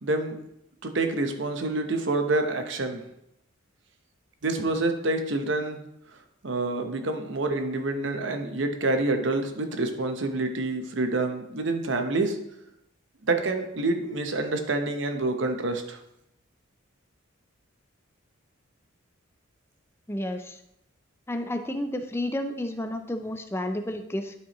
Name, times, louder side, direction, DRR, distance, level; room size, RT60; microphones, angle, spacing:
voice 1, 0.0-0.4 0.8-3.0 4.4-5.8 6.4-12.4 13.2-16.0, right 2 dB, 60° right, 6 dB, 0.8 m, -27 dB
voice 2, 20.1-20.6 21.3-24.3, left 1 dB, 10° left, 7 dB, 0.5 m, -31 dB
11.5 x 4.7 x 3.0 m, 0.81 s
head